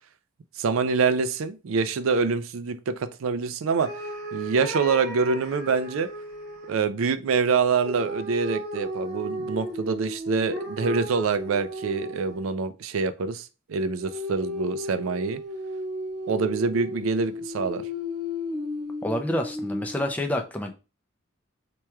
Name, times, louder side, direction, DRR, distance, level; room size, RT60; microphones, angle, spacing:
voice 1, 0.6-3.9 4.3-6.1 6.7-15.4 16.3-17.8, right 5 dB, 75° right, 0.4 m, -25 dB
sound 1, 3.8-6.8 7.8-12.6 14.0-20.1, left 1 dB, 50° right, 1.0 m, -34 dB
voice 2, 19.0-20.7, left 1 dB, 5° left, 0.4 m, -28 dB
4.5 x 2.9 x 2.3 m
head